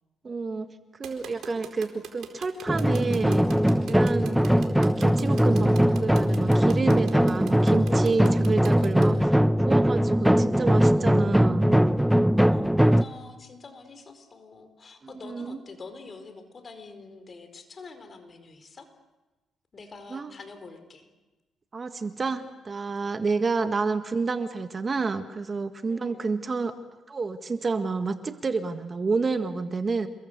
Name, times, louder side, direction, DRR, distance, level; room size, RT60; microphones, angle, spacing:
voice 1, 0.2-0.7 1.0-3.5 3.9-9.4 9.6-11.9 15.2-15.6 20.1-20.3 21.7-26.7 27.1-30.1, right 4 dB, 35° right, 9 dB, 1.6 m, -29 dB
sound 1, 1.0-9.1, right 9 dB, 75° right, 4.4 m, -42 dB
sound 2, 2.7-13.0, equal, 5° right, 0.8 m, -21 dB
voice 2, 12.4-18.9 19.7-21.1 23.2-23.3 25.9-26.2, left 4 dB, 40° left, 8 dB, 4.6 m, -46 dB
29.0 x 22.0 x 8.1 m, 1.1 s
cardioid pair, 90°, 0 cm